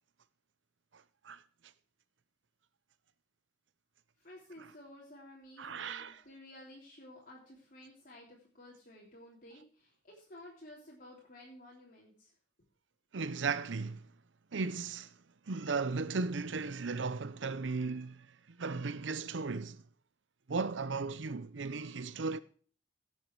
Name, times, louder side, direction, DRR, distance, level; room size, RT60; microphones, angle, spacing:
voice 1, 4.2-12.3, left 1 dB, 50° left, 3.2 m, -54 dB
voice 2, 5.6-6.2 13.1-14.0 14.5-15.1 15.5-18.3 18.6-19.8 20.5-22.4, right 4 dB, 90° right, 0.7 m, -36 dB
17.0 x 7.4 x 4.6 m
head